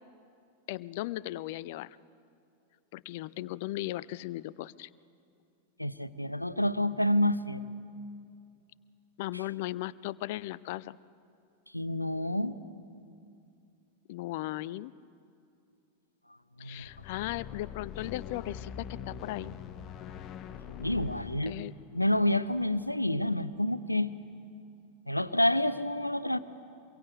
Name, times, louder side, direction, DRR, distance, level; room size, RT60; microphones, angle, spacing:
voice 1, 0.7-2.0 2.9-4.9 9.2-11.0 14.1-14.9 16.6-19.6 21.5-21.7, left 16 dB, 50° left, 19 dB, 0.5 m, -37 dB
voice 2, 5.8-7.6 11.7-12.5 16.6-16.8 20.8-21.5 21.9-24.1 25.1-26.4, left 1 dB, 85° left, 14 dB, 0.8 m, -28 dB
sound 1, 16.8-23.1, left 8 dB, 30° left, 1.1 m, -44 dB
24.5 x 22.5 x 8.2 m, 2.5 s
figure-of-eight pair, 90°, 0 cm